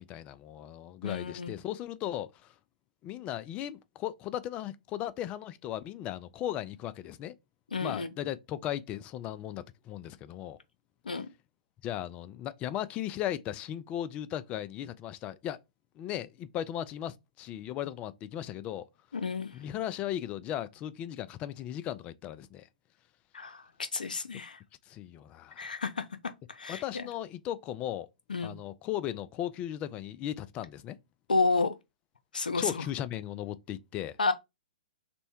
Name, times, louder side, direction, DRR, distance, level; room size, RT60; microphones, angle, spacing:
voice 1, 0.0-2.5 3.0-7.3 7.8-10.6 11.1-11.2 11.8-15.6 16.0-18.8 19.5-22.7 24.9-25.8 26.7-28.1 28.4-31.0 32.5-34.2, left 11 dB, 25° left, 0.3 m, -37 dB
voice 2, 1.0-1.5 7.7-8.1 11.1-11.3 19.1-19.6 23.3-24.6 25.6-26.0 26.5-27.1 28.3-28.6 31.3-31.7 32.3-32.8 34.2-34.3, left 3 dB, 80° left, 0.5 m, -31 dB
3.4 x 2.1 x 4.3 m
hypercardioid pair, 120°, 5 cm